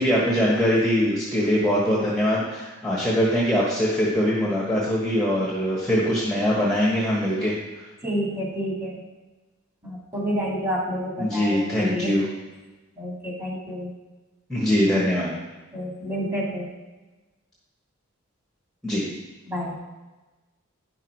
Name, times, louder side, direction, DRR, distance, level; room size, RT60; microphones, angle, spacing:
voice 1, 0.0-7.5 11.2-12.2 14.5-15.3 18.8-19.0, equal, 5° left, -6 dB, 1.4 m, -22 dB
voice 2, 8.0-9.0 9.8-12.2 13.0-13.9 15.7-16.7 19.5-19.7, equal, 15° right, -4 dB, 2.2 m, -29 dB
10.5 x 6.0 x 4.6 m, 1.2 s
head